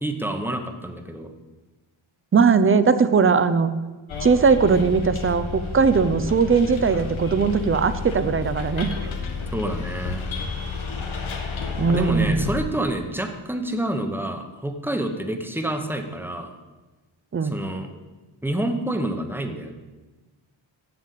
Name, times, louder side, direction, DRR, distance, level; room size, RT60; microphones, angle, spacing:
voice 1, 0.0-1.3 9.5-10.3 11.9-16.5 17.4-17.9 18.4-19.7, right 1 dB, 5° right, 6 dB, 0.9 m, -28 dB
voice 2, 2.3-3.7 4.2-5.5 5.7-8.9 11.8-12.4 17.3-17.6, right 5 dB, 30° right, 12 dB, 0.5 m, -19 dB
Bus, 4.1-12.6, left 5 dB, 80° left, 1.7 m, -31 dB
7.8 x 7.1 x 8.2 m, 1.2 s
wide cardioid pair, 150°, 47 cm